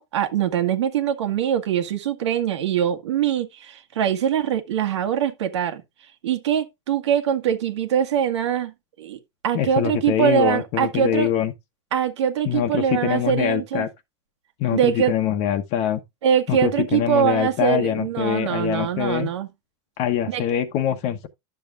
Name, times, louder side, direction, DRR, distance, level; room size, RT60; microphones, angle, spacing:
voice 1, 0.0-5.8 6.2-9.2 9.4-11.3 11.9-13.9 14.7-15.1 16.2-19.5 20.3-20.4, right 9 dB, 90° right, 1.7 m, -23 dB
voice 2, 9.5-11.5 12.4-13.9 14.6-16.0 16.5-19.3 20.0-21.3, left 10 dB, 50° left, 1.1 m, -24 dB
11.5 x 7.1 x 2.5 m
supercardioid pair, 125°, 14 cm